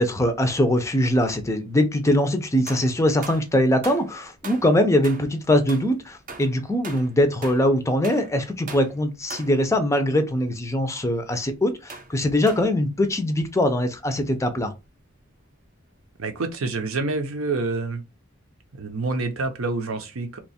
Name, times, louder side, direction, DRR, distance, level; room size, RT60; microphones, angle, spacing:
voice 1, 0.0-14.7, left 1 dB, 15° left, 0.4 m, -22 dB
sound 1, 2.7-3.6 3.8-4.1 4.4-5.4 5.7-7.7 8.0-8.4 8.7-9.0 9.3-9.6 10.2-10.4 11.9-12.1 12.5-12.8 13.7-13.8 14.0-14.1 17.4-17.5, right 4 dB, 40° right, 0.6 m, -40 dB
voice 2, 16.2-18.0 18.8-20.4, right 3 dB, 80° right, 0.7 m, -27 dB
2.9 x 2.3 x 4.1 m
head